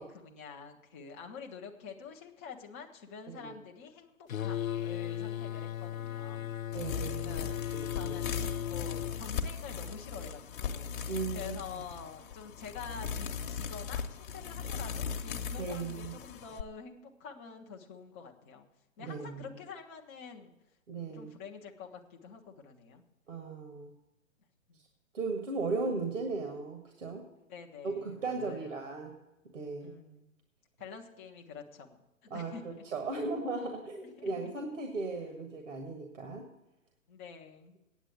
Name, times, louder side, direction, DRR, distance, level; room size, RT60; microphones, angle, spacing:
voice 1, 0.0-6.6 7.2-11.0 11.3-18.7 19.0-20.5 20.9-23.0 24.7-24.8 27.4-28.9 29.8-30.3 30.8-32.0 32.2-32.9 34.2-34.3 37.1-37.8, left 6 dB, 10° left, 1 dB, 0.4 m, -47 dB
sound 1, 4.3-9.2, left 11 dB, 80° left, 0.5 m, -36 dB
sound 2, 6.7-16.6, left 6 dB, 40° left, 0.9 m, -38 dB
voice 2, 6.7-7.4 7.7-8.1 11.1-11.8 15.6-16.1 19.0-19.6 20.9-21.3 23.3-23.9 25.1-27.2 27.8-29.2 29.5-29.9 32.3-32.5 32.9-36.4, right 3 dB, 65° right, 3 dB, 1.7 m, -37 dB
9.1 x 8.1 x 8.1 m, 0.95 s
figure-of-eight pair, 125°, 40 cm